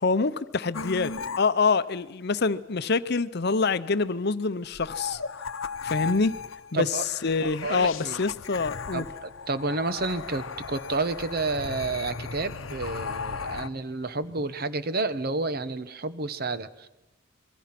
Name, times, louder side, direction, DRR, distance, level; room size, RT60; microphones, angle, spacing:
voice 1, 0.0-5.2 5.8-6.3 6.7-6.9 7.2-9.0, left 4 dB, 55° left, 0.7 m, -26 dB
sound 1, 0.7-1.4 4.7-13.7, left 5 dB, 80° left, 0.9 m, -36 dB
voice 2, 6.7-7.1 7.4-8.2 8.9-16.9, right 3 dB, 50° right, 1.1 m, -30 dB
26.5 x 22.0 x 6.0 m
head